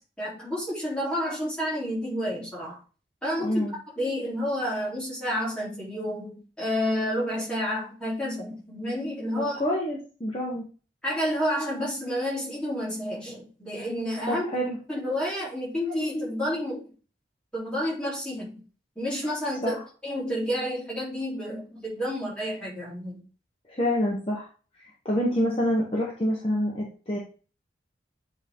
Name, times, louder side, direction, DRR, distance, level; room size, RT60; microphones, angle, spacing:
voice 1, 0.2-2.8 3.2-3.6 4.0-9.6 11.0-14.5 14.9-16.8 17.5-18.6 18.9-23.2, equal, 5° left, -7 dB, 3.3 m, -30 dB
voice 2, 3.4-3.7 9.4-10.6 14.3-14.8 19.6-19.8 23.7-24.5 24.7-27.2, equal, 30° left, -3 dB, 1.3 m, -27 dB
8.2 x 3.8 x 3.7 m, 0.36 s
head